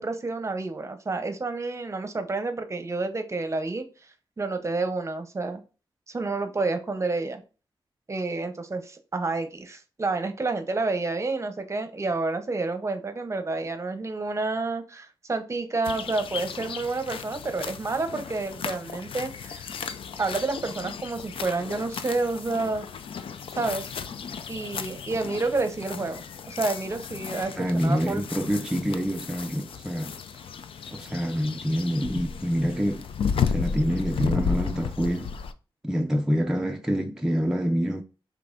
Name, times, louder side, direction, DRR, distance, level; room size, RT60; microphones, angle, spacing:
voice 1, 0.0-3.8 4.4-5.6 6.1-7.4 8.1-19.7 20.2-22.9 23.6-23.9 24.5-26.2 26.5-27.5 27.8-28.2, right 3 dB, 30° right, 0.7 m, -29 dB
sound 1, 15.8-35.5, left 6 dB, 75° left, 0.4 m, -34 dB
voice 2, 27.6-30.1 30.9-33.1 33.4-35.3 35.8-38.0, equal, 5° right, 0.4 m, -26 dB
5.2 x 3.4 x 2.5 m
wide cardioid pair, 105°, 9 cm